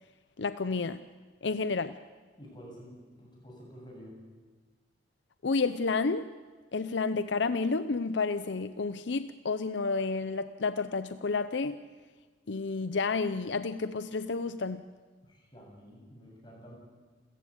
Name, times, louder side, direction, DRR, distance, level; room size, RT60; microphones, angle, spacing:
voice 1, 0.4-1.0 1.4-2.0 5.4-6.3 6.7-11.8 12.5-14.8, left 4 dB, 75° left, 12 dB, 0.6 m, -30 dB
voice 2, 2.4-4.2 15.2-16.8, equal, 25° left, -2 dB, 7.6 m, -50 dB
28.5 x 15.0 x 8.5 m, 1.4 s
head